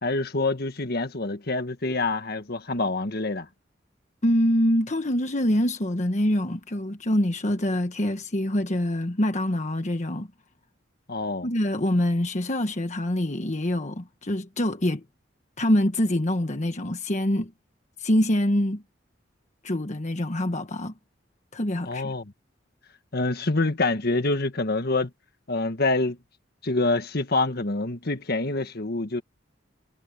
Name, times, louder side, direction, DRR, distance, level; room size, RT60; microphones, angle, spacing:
voice 1, 0.0-3.5 11.1-11.5 21.8-22.2 23.1-25.1 25.5-26.2 26.6-29.2, left 2 dB, 55° left, 1.7 m, -26 dB
voice 2, 4.2-10.3 11.4-15.0 15.6-17.5 18.0-18.8 19.6-20.9 21.5-22.1, left 1 dB, 40° left, 1.3 m, -25 dB
head